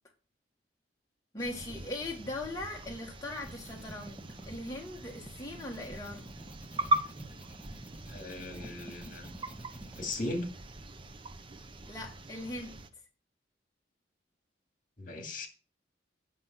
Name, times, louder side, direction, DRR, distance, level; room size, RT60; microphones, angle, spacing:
voice 1, 1.3-4.2 4.5-6.2 11.9-12.8, left 2 dB, 20° left, 1.6 m, -39 dB
sound 1, 1.4-12.9, right 1 dB, 30° right, 0.8 m, -39 dB
sound 2, 3.1-10.2, right 1 dB, 10° right, 1.2 m, -50 dB
voice 2, 8.1-9.3 10.0-10.5 15.0-15.5, left 2 dB, 50° left, 2.2 m, -37 dB
9.0 x 6.2 x 5.8 m
head